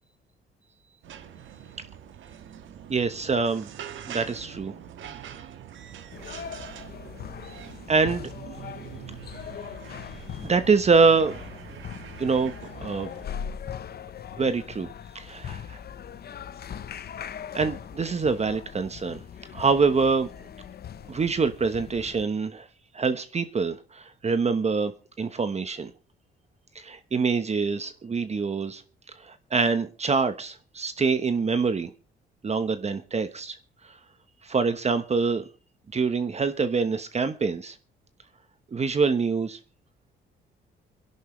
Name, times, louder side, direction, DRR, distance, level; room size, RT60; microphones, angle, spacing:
sound 1, 1.0-13.3, right 9 dB, 75° right, 1.5 m, -44 dB
voice 1, 2.9-3.7 4.1-4.8 7.9-8.3 10.4-11.4 11.7-11.8 12.2-12.5 12.8-13.1 14.4-14.9 15.1-15.8 17.5-19.2 19.5-20.3 21.1-22.7 22.9-24.9 25.2-25.9 26.7-28.8 29.2-31.9 32.4-33.6 33.8-34.0 34.4-35.4 35.9-37.8 38.7-39.6, right 4 dB, 35° right, 1.1 m, -25 dB
sound 2, 6.1-22.2, left 8 dB, 55° left, 0.9 m, -40 dB
26.0 x 11.0 x 3.2 m
cardioid pair, 90°, 20 cm